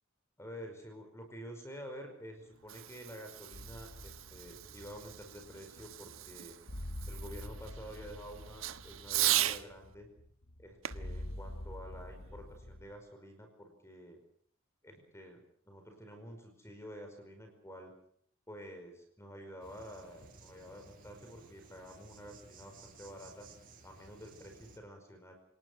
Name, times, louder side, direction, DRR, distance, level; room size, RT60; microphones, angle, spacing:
voice 1, 0.4-6.6 7.1-10.1 10.6-14.2 14.8-17.9 18.5-23.5 23.8-25.4, equal, 15° left, 5 dB, 5.1 m, -49 dB
Fireworks, 2.4-9.7 10.8-12.5, right 13 dB, 90° right, 1.3 m, -38 dB
sound 1, 3.5-12.9, left 1 dB, 90° left, 2.0 m, -47 dB
Insect, 19.6-24.8, right 3 dB, 45° right, 7.7 m, -57 dB
28.0 x 19.5 x 6.4 m, 0.62 s
head